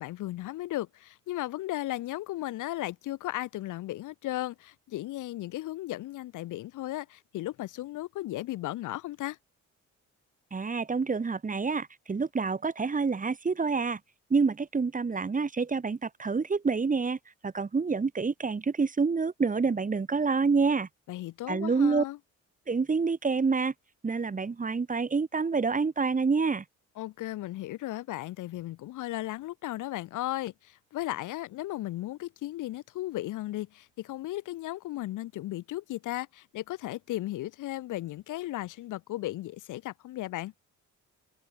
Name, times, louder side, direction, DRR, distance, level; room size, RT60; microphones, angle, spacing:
voice 1, 0.0-9.4 21.1-22.2 27.0-40.5, left 16 dB, 85° left, 2.0 m, -35 dB
voice 2, 10.5-14.0 14.3-17.2 17.4-20.9 21.5-22.0 22.7-23.7 24.0-26.6, right 4 dB, 25° right, 1.5 m, -27 dB
open air
cardioid pair, 90°, 30 cm